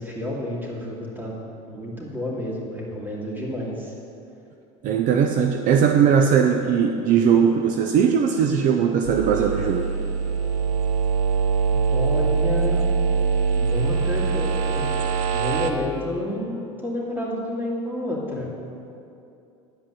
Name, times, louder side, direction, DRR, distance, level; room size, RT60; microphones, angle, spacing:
voice 1, 0.0-1.3 1.7-3.9 11.7-12.8 13.5-14.9 15.3-18.5, left 1 dB, 10° right, -4 dB, 2.6 m, -30 dB
voice 2, 4.8-9.9, right 7 dB, 50° right, 5 dB, 0.6 m, -19 dB
sound 1, 9.0-15.7, right 5 dB, 80° right, 0.8 m, -23 dB
11.0 x 5.2 x 7.2 m, 2.6 s
supercardioid pair, 100°, 17 cm